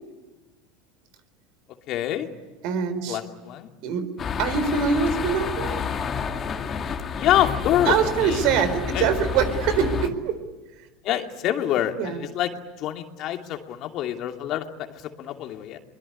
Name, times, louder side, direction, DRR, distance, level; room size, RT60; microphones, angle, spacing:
voice 1, 1.9-2.3 3.1-3.7 7.2-7.9 8.2-8.4 8.9-9.1 11.0-12.5 12.8-15.8, left 12 dB, 50° left, 5 dB, 2.7 m, -26 dB
voice 2, 2.6-3.2 3.8-4.1 4.4-5.8 7.9-10.4 10.8-10.9 12.0-12.2, right 7 dB, 60° right, 11 dB, 4.2 m, -24 dB
sound 1, 4.2-10.1, left 6 dB, 30° left, 2.4 m, -29 dB
24.0 x 22.0 x 9.8 m, 1.3 s
hypercardioid pair, 90°, 0 cm